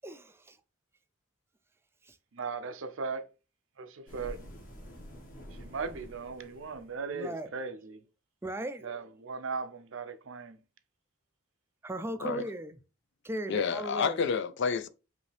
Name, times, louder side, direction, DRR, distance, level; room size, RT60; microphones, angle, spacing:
voice 1, 0.0-0.6 2.0-2.2 7.1-7.5 8.4-8.9 11.8-12.8 13.2-14.2, right 1 dB, 10° right, 0.4 m, -37 dB
voice 2, 2.3-3.3 3.8-4.4 5.6-8.0 8.8-10.6, right 4 dB, 65° right, 0.6 m, -38 dB
sound 1, 4.1-7.1, equal, 40° left, 1.4 m, -47 dB
voice 3, 13.5-14.9, left 5 dB, 60° left, 0.5 m, -29 dB
5.3 x 2.7 x 3.2 m
head